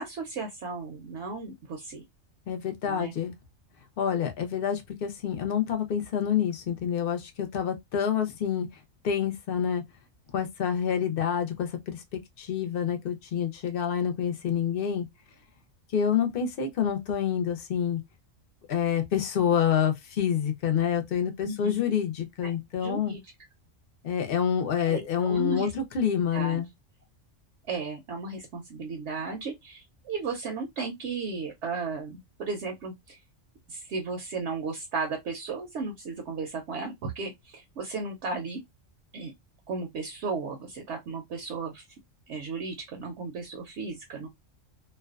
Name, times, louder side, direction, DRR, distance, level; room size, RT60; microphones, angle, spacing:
voice 1, 0.0-2.0 2.8-3.1 21.4-21.8 22.4-22.5 22.8-23.2 24.8-25.7 26.3-26.6 27.7-33.2 33.7-38.6 39.1-39.3 39.7-41.8 42.3-44.3, right 4 dB, 65° right, 0.8 m, -35 dB
voice 2, 2.5-3.3 4.0-8.7 9.0-9.8 10.3-12.0 12.4-15.1 15.9-18.0 18.7-23.1 24.0-26.7, left 8 dB, 55° left, 0.7 m, -27 dB
2.5 x 2.1 x 2.3 m
omnidirectional pair, 1.4 m